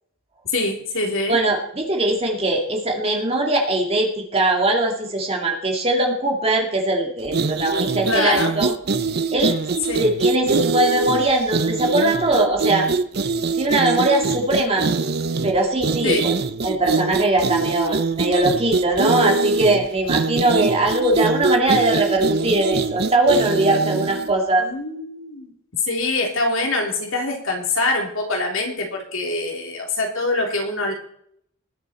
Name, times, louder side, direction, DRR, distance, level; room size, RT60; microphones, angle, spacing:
voice 1, 0.5-1.4 8.1-8.5 9.9-10.0 16.0-16.3 24.6-25.5 25.8-30.9, left 2 dB, 60° left, 1 dB, 3.2 m, -24 dB
voice 2, 1.3-8.7 9.3-9.6 10.0-12.9 13.6-14.9 15.4-16.2 16.6-24.6, right 2 dB, 25° right, 1 dB, 2.4 m, -20 dB
sound 1, 7.3-24.3, right 4 dB, 45° right, 0.6 m, -23 dB
20.0 x 8.2 x 4.3 m, 0.66 s
head